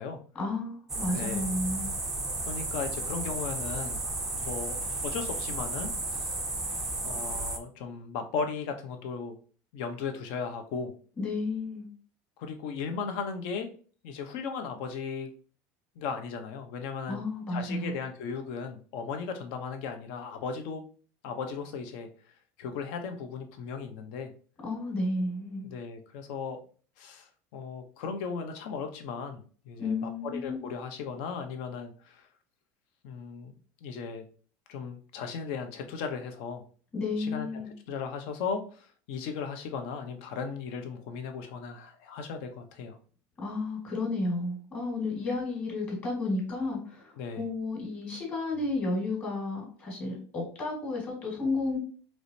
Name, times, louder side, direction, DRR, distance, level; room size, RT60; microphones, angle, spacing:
voice 1, 0.3-1.9 11.2-11.9 17.1-18.0 24.6-25.7 29.8-30.7 36.9-37.7 43.4-51.8, left 2 dB, 25° left, -1 dB, 1.8 m, -32 dB
sound 1, 0.9-7.6, right 2 dB, 5° right, 0.4 m, -33 dB
voice 2, 1.1-1.5 2.4-4.0 4.3-4.7 5.0-6.4 7.0-9.4 9.7-10.9 12.4-13.7 14.0-15.3 16.0-17.2 17.5-20.8 21.2-22.1 22.6-24.3 25.6-26.6 27.0-32.3 33.0-33.5 33.8-34.2 34.7-36.6 37.2-37.5 37.9-43.0 47.2-47.4, left 5 dB, 60° left, 6 dB, 0.8 m, -36 dB
4.8 x 3.0 x 2.7 m, 0.41 s
cardioid pair, 175°, 6 cm